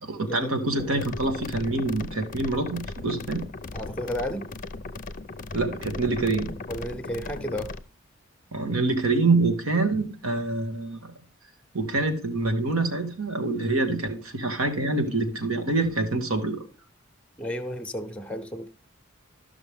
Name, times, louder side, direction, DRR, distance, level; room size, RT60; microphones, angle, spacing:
voice 1, 0.0-3.4 5.5-6.5 8.5-11.1 11.7-16.6, right 2 dB, 85° right, 1.7 m, -26 dB
sound 1, 0.8-7.8, left 3 dB, 40° left, 0.6 m, -37 dB
voice 2, 3.7-4.4 6.7-7.7 17.4-18.7, equal, 5° left, 1.0 m, -32 dB
13.0 x 6.0 x 3.5 m
head